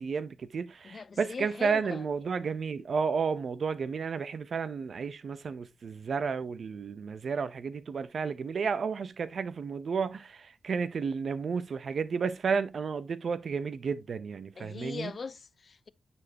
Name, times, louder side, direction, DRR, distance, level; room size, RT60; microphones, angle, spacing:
voice 1, 0.0-15.1, right 5 dB, 70° right, 0.7 m, -32 dB
voice 2, 0.8-2.0 14.6-15.9, left 5 dB, 55° left, 0.4 m, -40 dB
9.7 x 4.4 x 2.8 m
cardioid pair, 55°, 0 cm